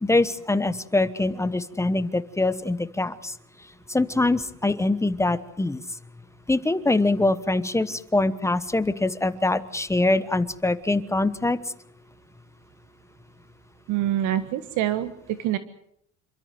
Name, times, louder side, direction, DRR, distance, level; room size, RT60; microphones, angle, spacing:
voice 1, 0.0-3.3 3.9-5.8 6.5-11.6, left 2 dB, 10° left, 13 dB, 1.1 m, -23 dB
voice 2, 13.9-15.6, right 12 dB, 70° right, 11 dB, 1.6 m, -26 dB
28.0 x 13.5 x 9.5 m, 0.70 s
cardioid pair, 125°, 31 cm